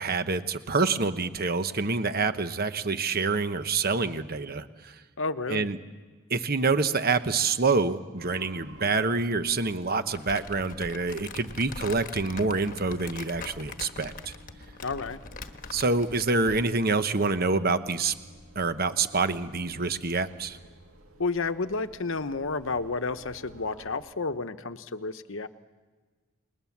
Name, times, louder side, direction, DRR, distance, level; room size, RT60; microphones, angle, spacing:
voice 1, 0.0-4.9 5.5-5.8 6.3-14.3 15.7-18.1 18.5-20.6, right 3 dB, 45° right, 10 dB, 1.0 m, -27 dB
voice 2, 5.2-5.7 14.8-15.2 21.2-25.5, left 3 dB, 60° left, 10 dB, 0.9 m, -31 dB
sound 1, 8.2-24.0, equal, 70° right, 2.3 m, -53 dB
Crumpling crinkling, 10.1-16.7, left 4 dB, 40° left, 1.2 m, -42 dB
30.0 x 20.5 x 7.3 m, 1.4 s
head